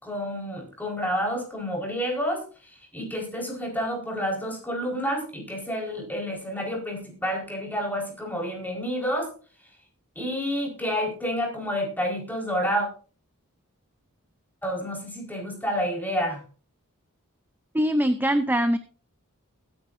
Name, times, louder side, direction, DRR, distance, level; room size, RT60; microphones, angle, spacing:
voice 1, 0.0-2.4 2.9-9.3 10.1-12.9 14.6-16.4, equal, 10° left, 0 dB, 4.7 m, -29 dB
voice 2, 17.7-18.8, equal, 10° right, 10 dB, 0.6 m, -22 dB
21.5 x 9.6 x 2.7 m, 0.38 s
head